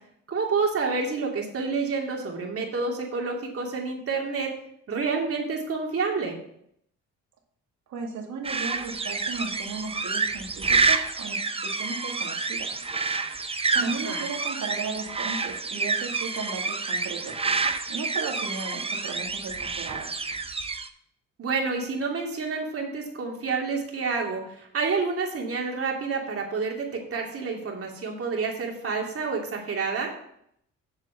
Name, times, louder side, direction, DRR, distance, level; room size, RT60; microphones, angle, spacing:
voice 1, 0.3-4.5 4.9-6.3 13.8-14.2 21.4-30.1, right 4 dB, 50° right, -1 dB, 2.8 m, -29 dB
voice 2, 7.9-12.7 13.7-17.4 17.9-20.1, right 4 dB, 70° right, 1 dB, 2.3 m, -35 dB
sound 1, 8.4-20.9, right 4 dB, 20° right, 0.8 m, -28 dB
7.5 x 7.3 x 5.7 m, 0.70 s
cardioid pair, 90°, 30 cm